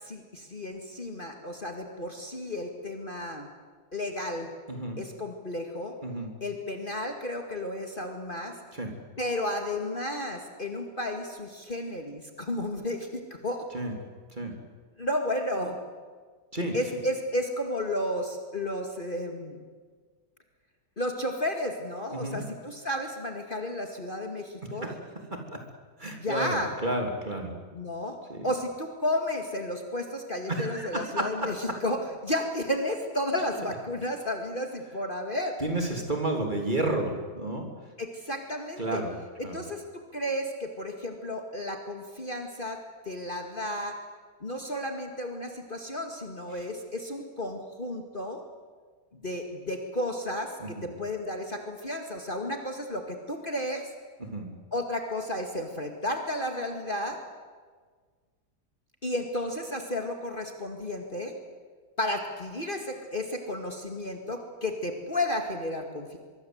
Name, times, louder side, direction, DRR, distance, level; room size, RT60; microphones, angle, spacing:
voice 1, 0.1-3.5 3.9-4.5 5.0-5.9 6.4-8.6 9.2-13.7 15.0-15.8 16.7-19.6 21.0-25.0 26.1-26.8 27.7-28.2 28.4-35.6 38.0-39.0 39.4-42.8 43.1-44.0 44.4-48.4 49.1-53.9 54.7-57.2 59.0-61.3 62.0-66.2, left 1 dB, 30° left, 4 dB, 2.3 m, -32 dB
voice 2, 4.7-5.0 6.0-6.3 8.7-8.9 13.7-13.9 14.3-14.5 16.5-16.8 22.1-22.4 24.8-25.0 25.3-25.6 26.0-27.5 28.3-28.5 30.5-31.8 35.6-37.7 38.8-39.1 39.4-39.6 50.6-50.9 54.2-54.5, right 1 dB, 25° right, 3 dB, 3.6 m, -31 dB
24.5 x 23.5 x 8.1 m, 1.5 s
omnidirectional pair, 1.9 m